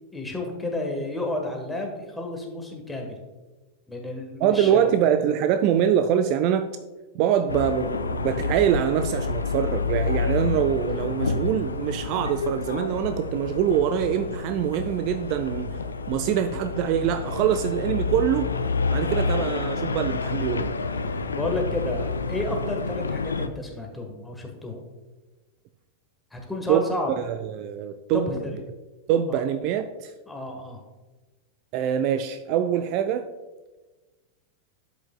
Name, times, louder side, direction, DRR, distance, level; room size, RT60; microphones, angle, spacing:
voice 1, 0.1-3.2 3.9-4.9 21.1-24.8 26.3-27.1 28.1-28.6 29.3-29.4 30.3-30.8, left 2 dB, 5° left, 1.4 m, -31 dB
voice 2, 4.4-6.7 7.1-15.8 16.1-18.5 18.9-20.7 26.7-26.8 27.3-28.4 29.1-30.1 31.7-33.3, right 9 dB, 40° right, 0.3 m, -24 dB
sound 1, 7.5-23.5, left 4 dB, 75° left, 0.4 m, -29 dB
11.5 x 5.1 x 2.3 m
figure-of-eight pair, 90°, 0 cm